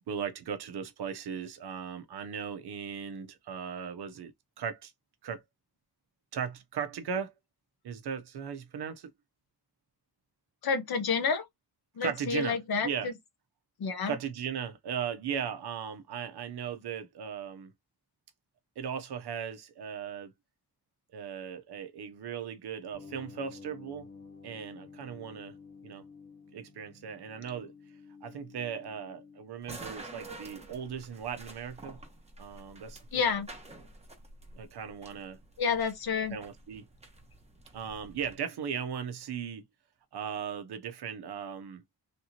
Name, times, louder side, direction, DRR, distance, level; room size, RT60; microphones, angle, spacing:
voice 1, 0.1-4.3 4.6-4.9 5.2-5.4 6.3-7.3 7.8-9.1 12.0-12.6 12.8-13.1 14.1-17.7 18.8-20.3 21.1-24.1 24.4-25.5 25.8-26.0 26.5-27.7 28.2-32.0 32.4-33.4 34.5-35.4 36.3-36.8 37.7-39.6 40.1-41.8, right 7 dB, 85° right, 0.7 m, -37 dB
voice 2, 10.6-11.4 12.0-13.1 13.8-14.2 33.1-33.5 35.6-36.4, left 5 dB, 70° left, 1.0 m, -29 dB
sound 1, 22.9-29.4, left 4 dB, 20° left, 0.8 m, -51 dB
sound 2, 29.6-38.4, right 2 dB, 15° right, 0.8 m, -49 dB
3.3 x 2.9 x 2.8 m
wide cardioid pair, 140°, 38 cm